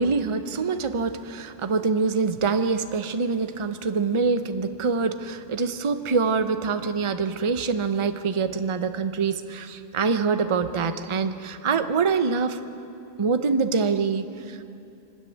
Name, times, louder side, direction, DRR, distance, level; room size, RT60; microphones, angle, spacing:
voice 1, 0.0-12.6 13.2-14.6, right 5 dB, 30° right, 9 dB, 0.7 m, -25 dB
24.5 x 13.0 x 9.3 m, 2.6 s
omnidirectional pair, 1.3 m